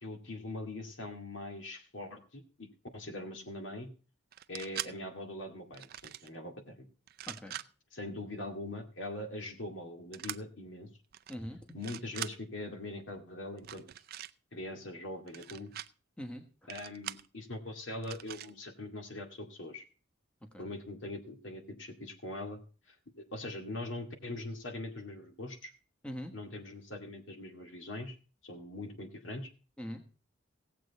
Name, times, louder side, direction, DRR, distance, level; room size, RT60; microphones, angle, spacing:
voice 1, 0.0-2.7 2.9-3.9 4.5-6.9 7.9-10.9 11.7-13.8 14.5-15.7 16.7-19.8 20.6-22.6 22.9-23.0 23.3-25.7 26.3-28.2 28.4-29.5, left 2 dB, 65° left, 4 dB, 2.2 m, -42 dB
sound 1, 4.3-4.9 5.7-6.3 7.1-7.7 10.1-10.4 11.1-11.3 11.7-12.3 13.6-14.3 15.3-15.9 16.7-17.3 18.0-18.5, right 12 dB, 50° right, 0.5 m, -42 dB
voice 2, 7.3-7.6 11.3-11.7 16.2-16.7 20.4-20.6 26.0-26.3 29.8-30.0, equal, 5° left, 3 dB, 1.2 m, -42 dB
17.0 x 7.8 x 4.1 m, 0.37 s
head